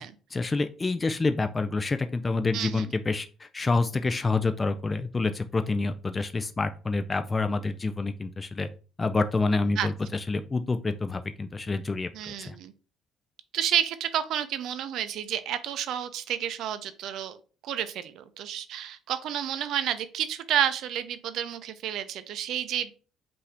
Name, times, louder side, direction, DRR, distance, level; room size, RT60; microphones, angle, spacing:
voice 1, 0.3-8.7 9.0-12.6, left 3 dB, 25° left, 9 dB, 0.4 m, -28 dB
voice 2, 2.5-2.9 9.8-9.9 12.1-12.7 13.5-17.4 17.6-22.9, right 10 dB, 70° right, 12 dB, 0.4 m, -30 dB
5.4 x 2.6 x 3.3 m, 0.38 s
supercardioid pair, 70°, 0 cm